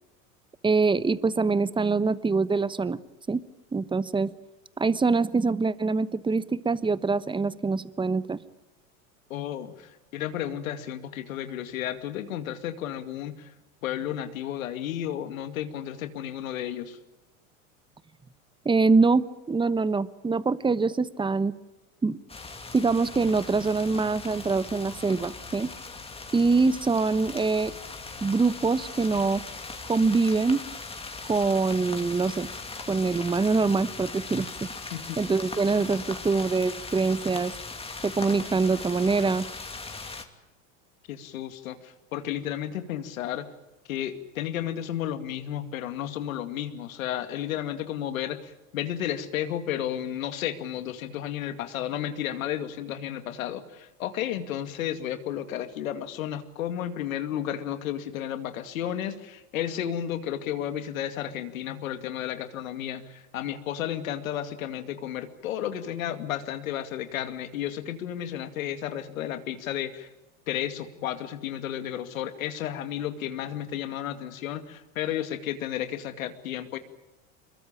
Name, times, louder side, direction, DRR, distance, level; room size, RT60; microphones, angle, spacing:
voice 1, 0.6-3.0 3.3-3.4 3.7-4.3 4.8-8.4 18.6-21.5 22.0-22.2 22.7-25.7 26.3-27.7 28.2-29.4 29.9-30.6 31.3-32.5 32.9-34.5 35.2-37.5 38.0-39.5, right 4 dB, 10° right, 16 dB, 1.1 m, -24 dB
voice 2, 9.3-13.5 13.8-17.0 34.9-35.2 41.1-43.5 43.9-70.1 70.5-76.8, left 11 dB, 80° left, 9 dB, 2.4 m, -32 dB
sound 1, 22.3-40.3, left 3 dB, 15° left, 2.8 m, -39 dB
24.5 x 22.0 x 8.9 m, 1.0 s
hypercardioid pair, 100°, 40 cm